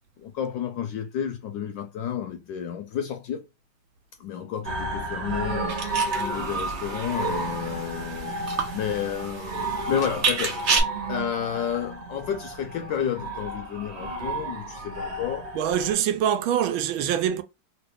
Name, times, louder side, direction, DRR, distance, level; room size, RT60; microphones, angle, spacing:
voice 1, 0.2-3.5 4.2-15.5, left 9 dB, 75° left, 1.1 m, -31 dB
sound 1, 4.6-15.9, right 2 dB, 40° right, 1.1 m, -32 dB
sound 2, 5.7-10.8, right 5 dB, 55° right, 0.7 m, -30 dB
voice 2, 15.5-17.4, right 9 dB, 80° right, 1.4 m, -24 dB
3.1 x 3.0 x 3.1 m
omnidirectional pair, 2.3 m